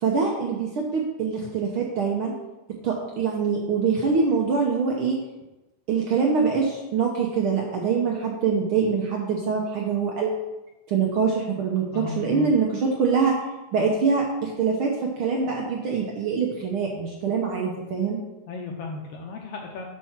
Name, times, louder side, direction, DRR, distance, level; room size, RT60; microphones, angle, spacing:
voice 1, 0.0-2.3 2.8-5.2 5.9-10.5 10.9-13.3 13.7-18.2, right 5 dB, 70° right, -1 dB, 1.2 m, -24 dB
voice 2, 11.9-12.5 18.5-19.8, left 4 dB, 75° left, 1 dB, 1.5 m, -34 dB
7.5 x 4.6 x 5.8 m, 1.1 s
omnidirectional pair, 3.4 m